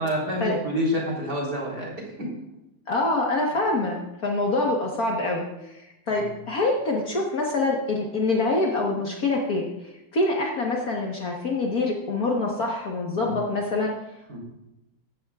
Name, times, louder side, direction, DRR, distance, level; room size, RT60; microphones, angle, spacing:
voice 1, 0.0-2.3 6.1-6.2 13.1-13.3 14.3-14.4, equal, 55° right, -3 dB, 4.2 m, -28 dB
voice 2, 2.9-9.7 10.1-13.9, left 2 dB, 50° left, -1 dB, 1.7 m, -25 dB
15.5 x 11.5 x 2.4 m, 0.93 s
omnidirectional pair, 2.1 m